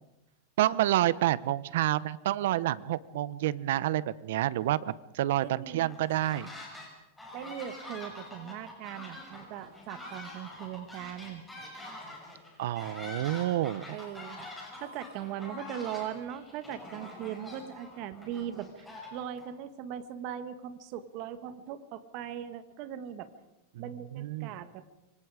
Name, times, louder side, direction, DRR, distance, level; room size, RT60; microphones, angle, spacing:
voice 1, 0.6-6.5 12.6-13.9 24.1-24.5, right 14 dB, 65° right, 19 dB, 0.8 m, -28 dB
voice 2, 5.4-5.9 7.3-11.4 13.9-14.4 14.8-23.3 23.7-24.8, right 10 dB, 40° right, 11 dB, 1.7 m, -39 dB
sound 1, 5.9-6.9 7.2-19.5, left 1 dB, 5° left, 5.8 m, -45 dB
26.5 x 24.5 x 5.0 m, 0.92 s
supercardioid pair, 165°, 0 cm